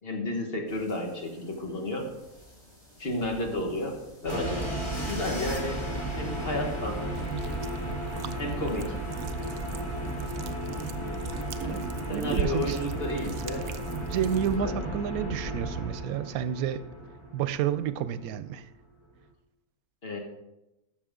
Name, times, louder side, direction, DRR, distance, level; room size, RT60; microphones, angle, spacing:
voice 1, 0.0-2.1 3.0-4.7 5.1-5.9 6.1-7.0 8.4-8.9 12.1-13.7 14.6-14.7 20.0-20.2, left 1 dB, 45° left, 1 dB, 1.6 m, -32 dB
sound 1, 0.7-14.5, equal, 70° left, 4.8 m, -56 dB
sound 2, 4.3-18.2, right 1 dB, 20° left, 1.4 m, -34 dB
sound 3, 7.1-14.6, right 9 dB, 65° right, 0.6 m, -41 dB
voice 2, 11.4-12.8 13.9-16.8 17.3-18.7, right 9 dB, 90° right, 14 dB, 1.0 m, -30 dB
12.0 x 6.9 x 3.7 m, 0.94 s
omnidirectional pair, 1.5 m